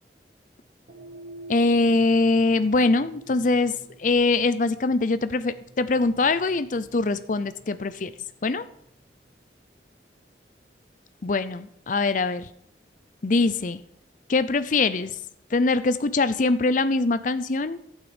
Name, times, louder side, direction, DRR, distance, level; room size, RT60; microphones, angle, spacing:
sound 1, 0.8-9.3, right 2 dB, 80° right, 1.5 m, -47 dB
voice 1, 1.5-8.1 8.4-8.7 11.2-12.5 13.2-13.8 14.3-15.2 15.5-18.0, left 3 dB, 45° left, 13 dB, 0.6 m, -23 dB
11.5 x 8.9 x 5.1 m, 0.71 s
head